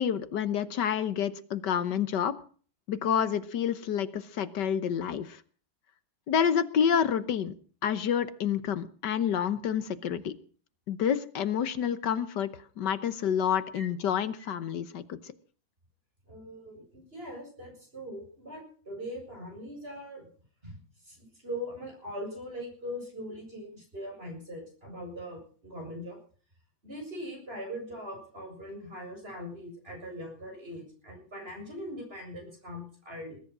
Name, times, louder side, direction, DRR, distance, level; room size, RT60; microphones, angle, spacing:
voice 1, 0.0-2.3 2.9-5.4 6.3-7.5 7.8-10.3 10.9-12.5 12.8-15.2, left 8 dB, 65° left, 14 dB, 1.6 m, -28 dB
voice 2, 16.3-20.2 20.6-26.2 26.8-33.4, equal, 30° right, 1 dB, 7.9 m, -41 dB
20.5 x 10.5 x 6.1 m, 0.43 s
omnidirectional pair, 2.1 m